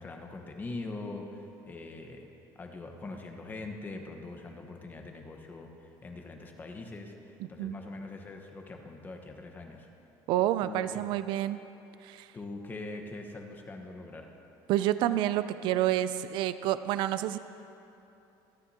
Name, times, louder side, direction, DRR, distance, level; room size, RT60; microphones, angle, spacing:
voice 1, 0.0-2.3 2.5-9.9 10.6-10.8 12.3-14.3, left 2 dB, 20° left, 3 dB, 1.2 m, -42 dB
voice 2, 7.4-7.8 10.3-11.6 12.0-12.3 14.7-17.4, right 13 dB, 65° right, 13 dB, 0.4 m, -29 dB
24.5 x 9.3 x 2.9 m, 2.8 s
cardioid pair, 140°, 9 cm